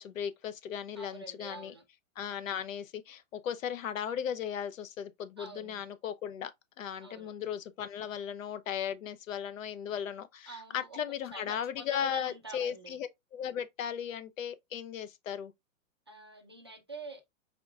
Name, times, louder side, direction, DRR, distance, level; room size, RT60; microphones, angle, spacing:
voice 1, 0.0-1.7 2.2-6.5 6.8-15.5, left 9 dB, 75° left, 0.8 m, -37 dB
voice 2, 1.0-1.8 5.4-5.9 7.0-7.3 10.5-11.0 11.3-13.0 16.1-17.2, right 2 dB, 20° right, 0.3 m, -46 dB
5.2 x 3.7 x 2.3 m
hypercardioid pair, 160°, 41 cm